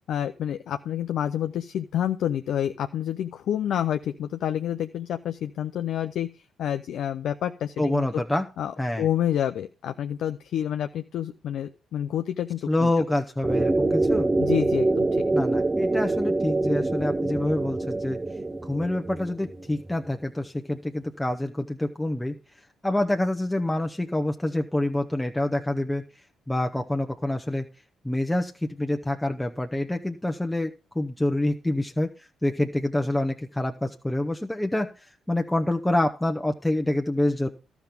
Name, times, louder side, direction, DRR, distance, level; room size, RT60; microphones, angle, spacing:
voice 1, 0.1-8.2 8.6-8.7 9.0-12.9 14.4-15.2, left 10 dB, 70° left, 8 dB, 0.5 m, -28 dB
voice 2, 7.8-8.5 8.8-9.1 12.7-14.3 15.3-18.2 18.6-22.4 22.8-26.0 26.5-27.7 28.0-37.5, left 1 dB, 10° left, 4 dB, 0.9 m, -27 dB
sound 1, 13.4-19.9, right 2 dB, 20° right, 0.7 m, -25 dB
12.5 x 6.0 x 5.2 m, 0.32 s
supercardioid pair, 55°, 0 cm